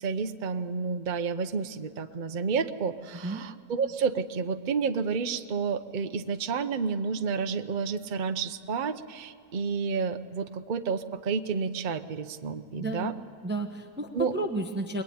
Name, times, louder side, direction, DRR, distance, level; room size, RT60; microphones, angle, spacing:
voice 1, 0.0-13.1 14.1-14.4, right 5 dB, 40° right, 7 dB, 0.8 m, -30 dB
voice 2, 12.8-13.1 13.4-15.0, right 2 dB, 10° right, 5 dB, 1.0 m, -32 dB
22.5 x 21.5 x 9.4 m, 2.1 s
omnidirectional pair, 1.6 m